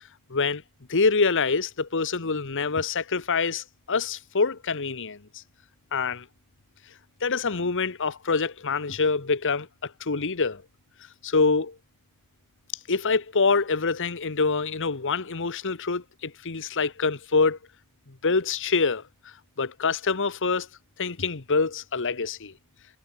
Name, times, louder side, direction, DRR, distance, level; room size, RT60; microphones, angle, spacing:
voice 1, 0.3-0.6 0.9-5.4 5.9-6.3 7.2-10.6 11.2-11.8 12.9-17.6 18.1-19.0 19.6-20.7 21.0-22.5, left 4 dB, 60° left, 1.3 m, -25 dB
head